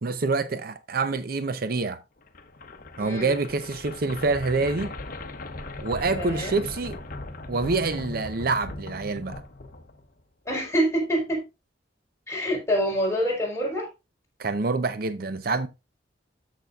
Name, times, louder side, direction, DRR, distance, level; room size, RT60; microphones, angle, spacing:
voice 1, 0.0-2.0 3.0-4.9 5.8-7.0 7.5-9.4 14.4-15.7, right 3 dB, 55° right, 0.7 m, -26 dB
sound 1, 2.2-10.2, left 2 dB, 50° left, 1.0 m, -38 dB
voice 2, 3.0-3.3 6.2-6.5 10.4-11.4 12.3-13.9, equal, 15° left, 4.6 m, -26 dB
13.5 x 6.1 x 2.4 m
head